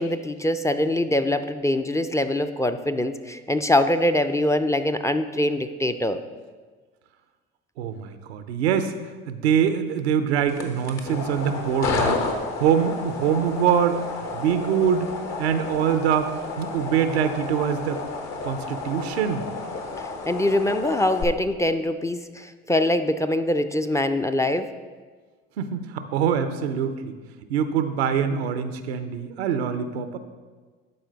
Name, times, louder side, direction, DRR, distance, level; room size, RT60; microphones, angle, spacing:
voice 1, 0.0-6.2 20.3-24.7, left 1 dB, 10° left, 9 dB, 0.4 m, -23 dB
voice 2, 7.8-9.0 9.3-14.0 14.3-15.1 15.4-18.0 18.4-19.4 25.6-27.1 27.5-30.2, right 8 dB, 90° right, 10 dB, 0.6 m, -24 dB
sound 1, 10.5-21.2, left 3 dB, 55° left, 1.1 m, -31 dB
12.0 x 4.3 x 3.9 m, 1.4 s
hypercardioid pair, 65°, 31 cm